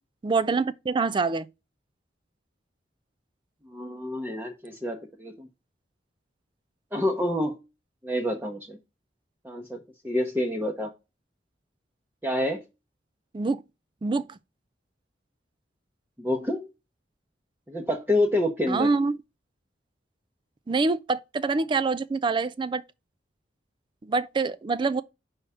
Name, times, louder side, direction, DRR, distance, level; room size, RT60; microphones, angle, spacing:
voice 1, 0.2-1.5 13.3-13.6 14.0-14.4 18.7-19.2 20.7-22.8 24.0-25.0, right 4 dB, 25° right, 0.3 m, -25 dB
voice 2, 3.7-5.5 6.9-7.5 8.0-8.8 9.4-9.8 10.0-10.9 12.2-12.6 16.2-16.7 17.7-18.9, left 1 dB, 10° right, 0.8 m, -27 dB
5.5 x 3.5 x 5.5 m
head